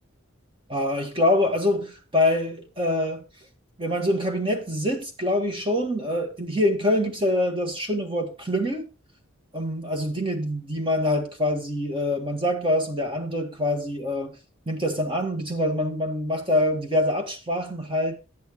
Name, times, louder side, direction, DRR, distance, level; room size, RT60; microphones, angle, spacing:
voice 1, 0.7-3.2 3.8-8.9 9.5-14.4 14.6-18.2, left 1 dB, 25° right, 1.6 m, -25 dB
10.5 x 9.1 x 3.1 m
head